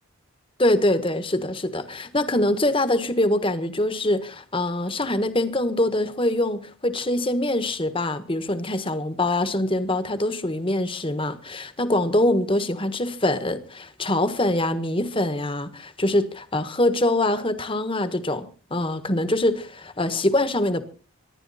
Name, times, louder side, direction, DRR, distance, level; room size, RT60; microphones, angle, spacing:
voice 1, 0.6-20.8, left 1 dB, 25° left, 1.4 m, -24 dB
25.0 x 11.5 x 4.2 m
head